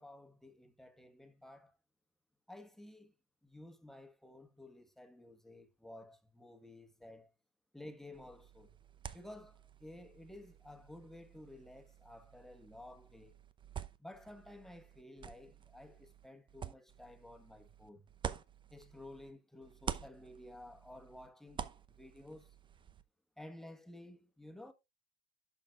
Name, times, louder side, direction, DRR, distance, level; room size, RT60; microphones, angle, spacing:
voice 1, 0.0-1.7 2.5-3.1 3.4-7.3 7.7-8.8 9.1-13.3 14.0-18.1 18.7-22.6 23.4-24.7, left 1 dB, ahead, 1.4 m, -53 dB
sound 1, 8.1-19.3 19.6-23.0, right 7 dB, 25° right, 0.7 m, -48 dB
11.0 x 6.0 x 2.4 m
supercardioid pair, 100°, 18 cm